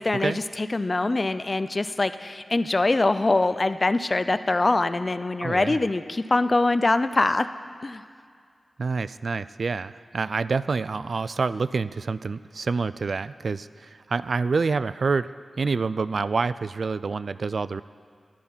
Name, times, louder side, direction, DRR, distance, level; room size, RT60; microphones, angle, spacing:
voice 1, 0.0-7.5 7.8-8.0, left 2 dB, 35° left, 12 dB, 0.5 m, -23 dB
voice 2, 5.4-5.8 8.8-15.3 15.6-17.8, right 4 dB, 65° right, 15 dB, 0.3 m, -27 dB
14.0 x 11.5 x 5.6 m, 2.3 s
wide cardioid pair, 75°, 0 cm